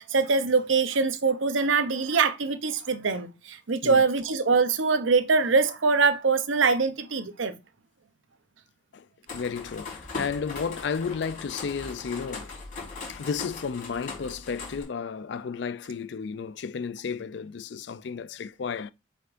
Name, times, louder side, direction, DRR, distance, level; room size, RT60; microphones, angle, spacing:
voice 1, 0.0-7.6, right 4 dB, 85° right, 0.7 m, -23 dB
voice 2, 9.3-12.6 13.1-18.9, left 6 dB, 65° left, 0.4 m, -33 dB
sound 1, 9.3-14.8, left 4 dB, 45° left, 4.1 m, -39 dB
7.8 x 5.2 x 2.6 m
head